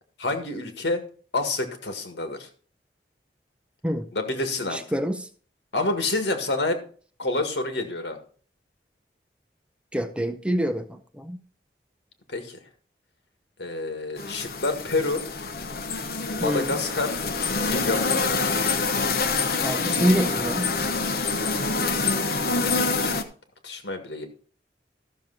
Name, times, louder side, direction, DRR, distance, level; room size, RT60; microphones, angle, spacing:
voice 1, 0.2-1.0 1.3-2.5 4.1-4.8 5.7-6.8 7.2-8.2 12.3-12.6 13.6-15.2 16.4-17.2 17.6-18.1 22.6-23.2 23.6-24.3, left 2 dB, 80° left, 1.9 m, -28 dB
voice 2, 4.7-5.2 9.9-11.4 16.4-16.7 19.6-20.7, equal, 5° right, 0.6 m, -26 dB
sound 1, 14.2-23.2, left 4 dB, 55° left, 0.9 m, -26 dB
13.5 x 6.8 x 4.1 m
head